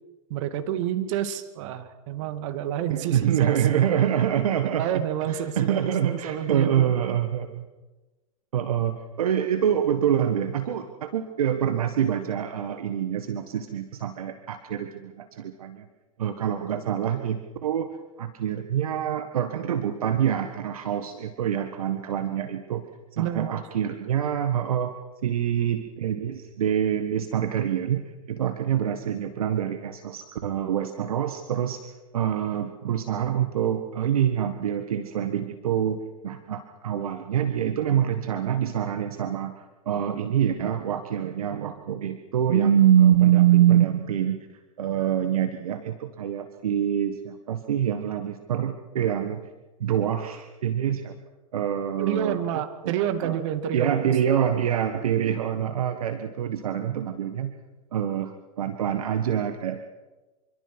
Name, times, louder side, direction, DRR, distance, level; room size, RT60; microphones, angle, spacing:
voice 1, 0.3-4.0 4.6-6.8 23.2-23.6 52.0-54.4, right 10 dB, 55° right, 9 dB, 2.4 m, -29 dB
voice 2, 2.9-7.6 8.5-15.9 16.2-17.9 18.2-22.9 23.1-24.9 25.2-28.0 28.3-31.8 32.1-44.5 44.8-49.4 49.8-51.1 51.5-53.4 53.7-57.5 57.9-59.8, right 9 dB, 70° right, 8 dB, 1.6 m, -25 dB
26.5 x 24.0 x 6.2 m, 1.2 s
hypercardioid pair, 100°, 19 cm